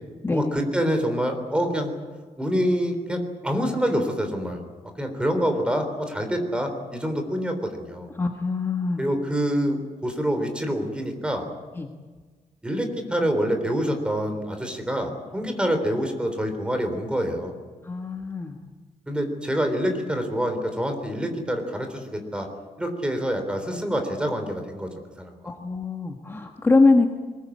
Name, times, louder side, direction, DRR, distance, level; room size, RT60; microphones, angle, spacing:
voice 1, 0.3-1.9 2.4-4.6 5.0-8.1 9.0-11.4 12.6-17.5 19.1-22.5 22.8-24.9 25.2-25.5, equal, 10° right, 6 dB, 3.6 m, -26 dB
voice 2, 8.2-9.0 11.8-11.9 17.8-18.6 25.4-27.1, left 3 dB, 20° left, 3 dB, 1.4 m, -23 dB
23.0 x 20.5 x 8.6 m, 1.4 s
wide cardioid pair, 180°, 13 cm